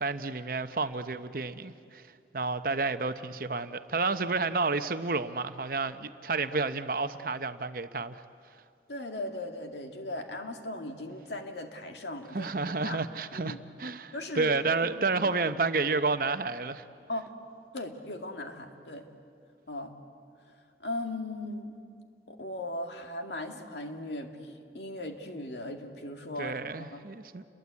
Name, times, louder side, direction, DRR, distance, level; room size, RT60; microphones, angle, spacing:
voice 1, 0.0-2.0 2.3-8.2 12.3-16.8 26.4-27.4, right 3 dB, 50° right, 10 dB, 0.8 m, -30 dB
voice 2, 8.9-12.5 12.8-13.0 13.3-13.6 14.1-14.5 14.8-15.0 17.1-17.3 17.7-19.1 19.7-20.0 20.8-21.7 22.3-27.0, left 1 dB, 80° left, 4 dB, 2.3 m, -38 dB
29.5 x 22.0 x 8.4 m, 2.4 s
head